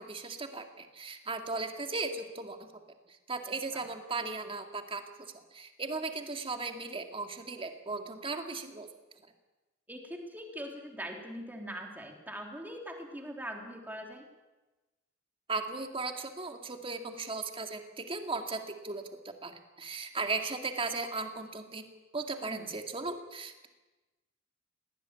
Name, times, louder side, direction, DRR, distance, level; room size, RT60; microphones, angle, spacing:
voice 1, 0.0-2.7 3.1-8.9 15.5-21.8 22.1-23.7, right 3 dB, 25° right, 5 dB, 2.1 m, -37 dB
voice 2, 9.9-14.2 22.5-22.8, equal, 10° right, 2 dB, 3.4 m, -42 dB
19.5 x 17.0 x 9.8 m, 1.1 s
head